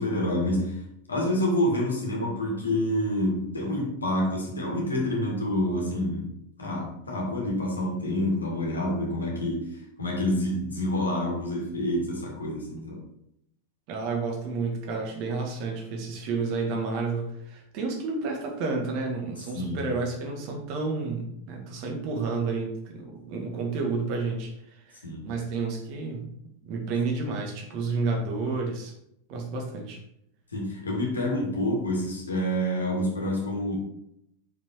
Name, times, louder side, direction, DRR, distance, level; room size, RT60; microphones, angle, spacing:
voice 1, 0.0-6.3 6.6-9.7 10.0-13.0 19.5-19.9 25.0-25.3 30.5-33.7, left 1 dB, 75° left, -1 dB, 2.2 m, -28 dB
voice 2, 13.9-24.5 24.9-26.2 26.6-28.9 29.3-30.0, right 4 dB, 45° right, 1 dB, 1.8 m, -30 dB
6.2 x 5.4 x 4.5 m, 0.76 s
figure-of-eight pair, 90°, 0 cm